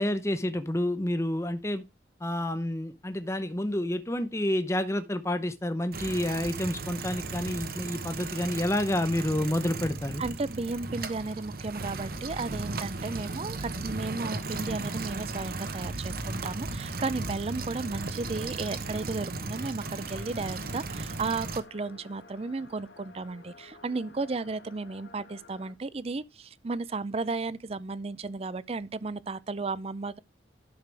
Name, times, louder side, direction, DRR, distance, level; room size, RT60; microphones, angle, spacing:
voice 1, 0.0-1.8 2.2-10.2, left 1 dB, 15° left, 0.8 m, -29 dB
sound 1, 5.9-21.6, right 3 dB, 55° right, 1.0 m, -36 dB
voice 2, 10.2-30.2, right 3 dB, 35° right, 0.5 m, -34 dB
sound 2, 20.1-25.7, left 4 dB, 85° left, 1.5 m, -53 dB
11.5 x 6.7 x 3.4 m
head